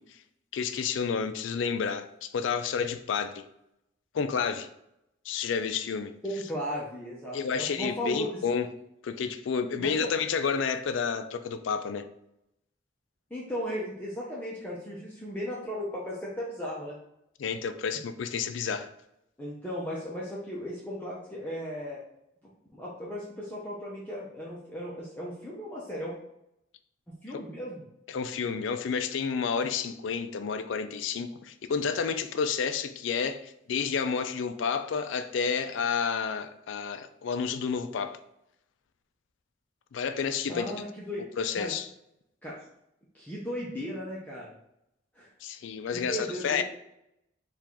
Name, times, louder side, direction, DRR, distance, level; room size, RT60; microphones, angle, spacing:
voice 1, 0.5-3.4 4.1-4.7 5.3-6.1 7.3-8.7 9.0-12.1 17.4-18.9 27.3-27.4 28.1-38.2 39.9-40.7 41.4-41.9 45.4-46.6, left 6 dB, 70° left, 10 dB, 0.4 m, -30 dB
voice 2, 6.2-8.4 9.8-10.1 13.3-17.0 19.4-22.0 22.7-26.1 27.1-27.8 40.5-41.2 41.6-41.7 42.4-42.5 43.1-44.5 45.2-45.3 45.9-46.6, equal, 10° left, -7 dB, 0.6 m, -36 dB
4.6 x 2.5 x 3.5 m, 0.80 s
head